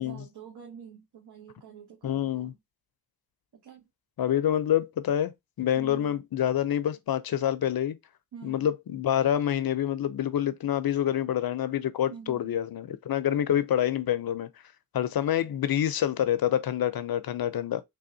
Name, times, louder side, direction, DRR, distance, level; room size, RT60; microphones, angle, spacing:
voice 1, 0.0-2.5 3.5-3.9 5.7-6.2 8.3-8.7 12.1-12.6, right 7 dB, 60° right, 1.0 m, -47 dB
voice 2, 2.0-2.5 4.2-5.3 5.6-8.0 8.4-14.5 14.9-17.8, left 10 dB, 55° left, 0.6 m, -27 dB
3.5 x 2.2 x 2.6 m
cardioid pair, 45°, 45 cm